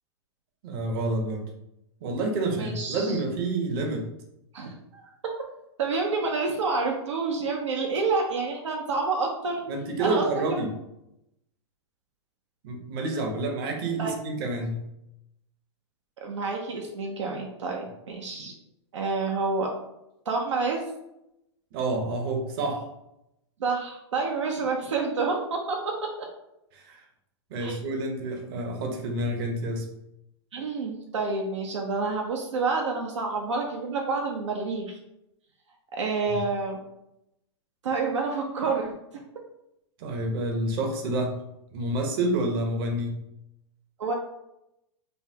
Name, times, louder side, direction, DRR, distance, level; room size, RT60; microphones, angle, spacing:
voice 1, 0.6-1.4 2.0-4.1 9.7-10.7 12.6-14.8 21.7-22.8 26.7-27.0 27.5-29.9 36.3-36.4 40.0-41.4 41.7-43.2, right 2 dB, 50° right, 3 dB, 0.9 m, -28 dB
voice 2, 2.6-3.2 4.5-5.1 5.8-9.7 10.0-10.6 14.0-14.1 16.2-18.5 18.9-19.7 20.3-20.9 23.6-25.9 27.6-27.8 30.5-35.0 36.0-36.8 37.8-38.9 44.0-44.1, right 4 dB, 85° right, 1 dB, 0.7 m, -28 dB
5.4 x 2.2 x 2.8 m, 0.85 s
hypercardioid pair, 120°, 15 cm